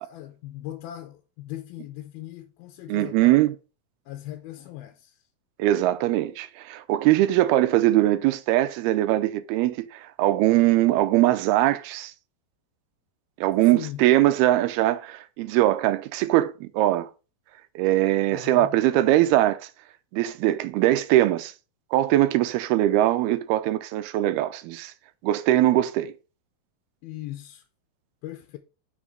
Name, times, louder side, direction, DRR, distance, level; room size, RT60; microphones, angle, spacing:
voice 1, 0.0-3.3 4.1-5.2 13.7-14.0 18.3-18.7 27.0-27.6 28.2-28.6, left 14 dB, 85° left, 2.6 m, -39 dB
voice 2, 2.9-3.6 5.6-12.1 13.4-17.1 17.8-19.7 20.1-21.5 21.9-24.9 25.2-26.1, right 15 dB, 90° right, 2.7 m, -21 dB
6.2 x 6.2 x 5.3 m
omnidirectional pair, 4.4 m